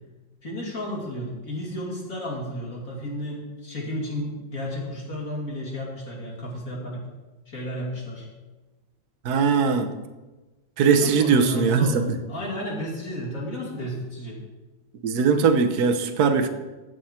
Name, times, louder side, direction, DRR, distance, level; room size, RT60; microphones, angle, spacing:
voice 1, 0.4-7.0 7.5-8.3 10.9-12.0 12.3-14.4, equal, 45° left, -2 dB, 2.8 m, -32 dB
voice 2, 9.2-9.9 10.8-12.1 15.0-16.5, right 5 dB, 55° right, 6 dB, 1.3 m, -20 dB
14.0 x 7.9 x 4.4 m, 1.2 s
omnidirectional pair, 2.1 m